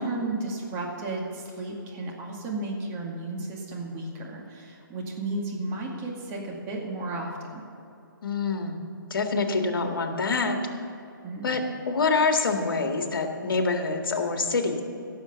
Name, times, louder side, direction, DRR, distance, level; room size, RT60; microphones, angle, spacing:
voice 1, 0.0-7.6 11.2-11.6, right 2 dB, 20° right, -1 dB, 2.1 m, -33 dB
voice 2, 8.2-8.8 9.1-10.6 11.4-14.8, left 4 dB, 70° left, 4 dB, 1.8 m, -26 dB
16.5 x 7.2 x 6.9 m, 2.8 s
hypercardioid pair, 145°, 12 cm